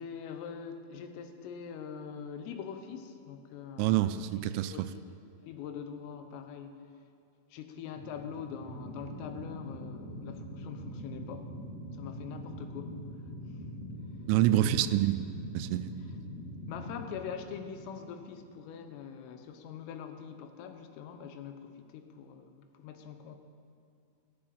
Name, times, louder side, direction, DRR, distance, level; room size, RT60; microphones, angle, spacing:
voice 1, 0.0-4.3 4.6-5.1 5.4-6.9 7.5-11.5 11.9-13.0 14.6-14.8 15.7-16.1 16.7-23.4, left 7 dB, 85° left, 7 dB, 3.7 m, -43 dB
voice 2, 3.8-4.9 14.3-15.9, right 13 dB, 85° right, 12 dB, 3.0 m, -27 dB
sound 1, 7.9-18.8, equal, 25° left, 1.5 m, -43 dB
14.5 x 10.0 x 8.7 m, 2.5 s
omnidirectional pair, 5.8 m